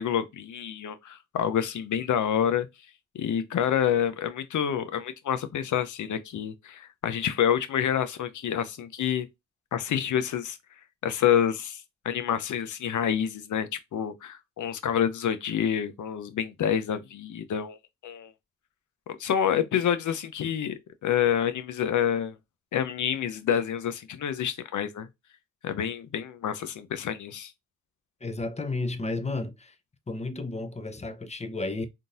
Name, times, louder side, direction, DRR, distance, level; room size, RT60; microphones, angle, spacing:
voice 1, 0.0-2.7 3.1-9.3 9.7-10.6 11.0-17.8 18.0-18.3 19.1-20.7 21.0-22.4 22.7-25.1 25.6-27.5, left 9 dB, 75° left, 0.7 m, -28 dB
voice 2, 28.2-29.8 30.1-31.9, left 2 dB, 20° left, 0.7 m, -32 dB
3.7 x 2.7 x 2.4 m
cardioid pair, 60°, 31 cm